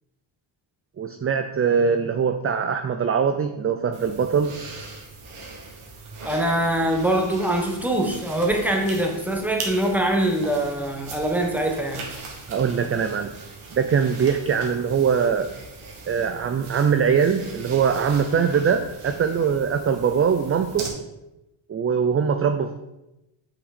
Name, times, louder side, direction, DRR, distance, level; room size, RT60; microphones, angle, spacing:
voice 1, 1.0-4.5 12.5-13.3 13.7-15.5 16.1-20.9 21.7-22.8, right 6 dB, 30° right, 8 dB, 0.4 m, -22 dB
sound 1, 3.9-20.9, right 3 dB, 90° right, 1.9 m, -40 dB
voice 2, 6.2-12.0, right 1 dB, 5° right, 1 dB, 1.3 m, -23 dB
7.9 x 5.9 x 4.2 m, 0.93 s
cardioid pair, 115°, 49 cm